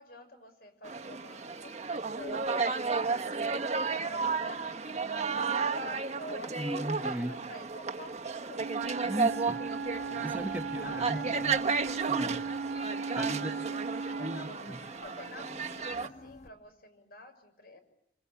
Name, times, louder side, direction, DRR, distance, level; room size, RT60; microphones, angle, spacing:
voice 1, 0.0-3.6 4.0-9.0 9.4-9.6 9.9-10.3 10.8-11.4 13.2-17.8, left 1 dB, 60° left, 6.4 m, -49 dB
sound 1, 0.8-16.1, right 4 dB, 40° right, 1.3 m, -33 dB
voice 2, 6.5-7.4 9.0-9.6 10.2-11.5 12.1-12.4 13.1-13.5 14.2-14.8, equal, 10° right, 1.3 m, -36 dB
Wind instrument woodwind instrument, 8.5-14.6, right 5 dB, 75° right, 1.0 m, -37 dB
sound 2, 8.8-16.5, left 2 dB, 40° left, 1.8 m, -53 dB
29.0 x 25.5 x 7.1 m
head